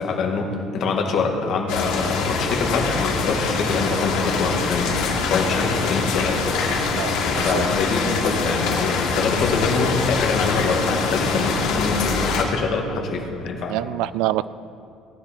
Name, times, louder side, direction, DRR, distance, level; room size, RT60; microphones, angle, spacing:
voice 1, 0.0-5.0 5.3-6.4 6.9-13.8, left 4 dB, 45° left, 2 dB, 1.8 m, -25 dB
sound 1, 1.7-12.4, left 4 dB, 80° left, 2.3 m, -24 dB
voice 2, 6.9-7.6 13.7-14.4, right 15 dB, 80° right, 17 dB, 0.4 m, -26 dB
18.0 x 11.0 x 4.4 m, 2.4 s
cardioid pair, 160°, 0 cm